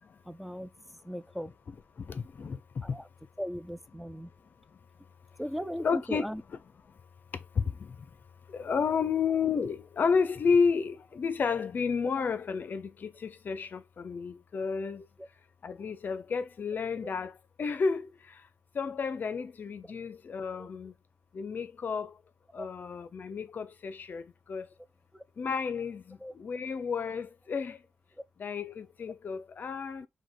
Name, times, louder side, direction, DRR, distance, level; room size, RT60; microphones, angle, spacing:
voice 1, 0.3-0.7 1.0-1.5 2.8-3.1 3.4-4.3 5.4-6.4 15.2-15.3 20.6-20.7 22.6-22.7 25.1-25.2 26.2-26.3, equal, ahead, 0.4 m, -38 dB
voice 2, 2.1-2.6 5.8-6.2 8.5-15.0 15.6-17.3 17.6-18.1 18.8-20.9 21.3-22.1 22.5-24.2 24.5-24.6 25.4-27.8 28.4-30.1, left 5 dB, 50° left, 0.5 m, -31 dB
5.0 x 2.2 x 3.9 m
wide cardioid pair, 135°, 4 cm